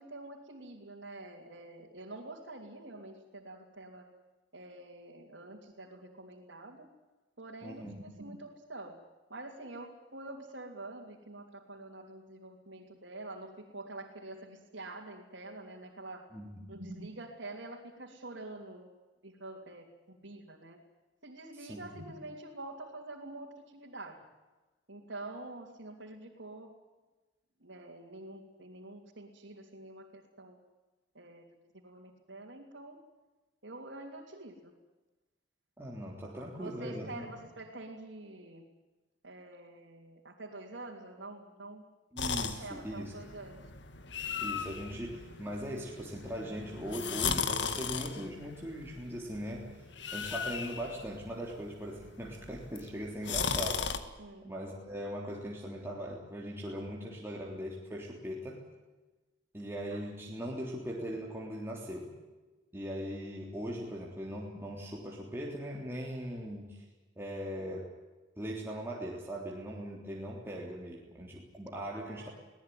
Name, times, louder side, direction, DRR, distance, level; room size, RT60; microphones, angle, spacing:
voice 1, 0.0-4.1 4.5-6.9 7.4-9.0 9.3-16.2 16.6-18.9 19.2-20.8 21.2-24.2 24.9-26.7 27.6-30.6 31.1-31.4 31.8-33.0 33.6-34.7 36.2-38.6 39.2-41.8 42.4-43.7 54.2-54.5 59.9-60.0 71.9-72.3, right 2 dB, 85° right, -2 dB, 3.2 m, -46 dB
voice 2, 7.6-7.9 16.3-16.6 21.5-21.9 35.8-37.2 42.1-43.1 44.4-49.7 50.1-53.9 54.4-58.6 59.5-62.1 62.7-66.8 67.1-67.9 68.4-72.3, equal, 15° right, -3 dB, 3.5 m, -40 dB
sound 1, 42.2-54.0, left 6 dB, 70° left, 1.9 m, -37 dB
22.5 x 18.0 x 9.5 m, 1.2 s
head